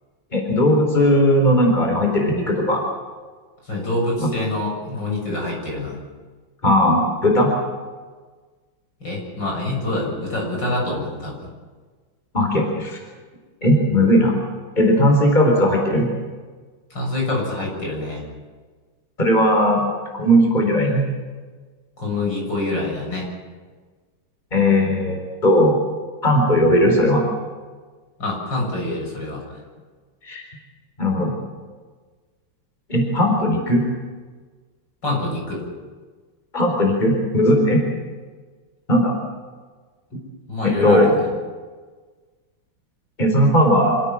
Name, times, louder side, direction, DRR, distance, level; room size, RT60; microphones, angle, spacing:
voice 1, 0.3-2.8 4.2-4.3 6.6-7.5 12.3-13.0 13.6-14.3 14.8-16.1 19.2-19.8 20.2-21.0 24.5-25.2 25.4-25.8 26.2-27.2 30.3-30.4 31.0-31.3 32.9-33.8 36.5-37.8 38.9-39.1 40.6-41.1 43.2-44.0, equal, 20° left, 1 dB, 4.5 m, -17 dB
voice 2, 3.7-6.0 9.0-11.4 16.9-18.3 22.0-23.3 28.2-29.6 35.0-35.6 40.5-41.2, left 2 dB, 65° left, -1 dB, 8.0 m, -26 dB
27.0 x 16.5 x 7.5 m, 1.4 s
omnidirectional pair, 2.1 m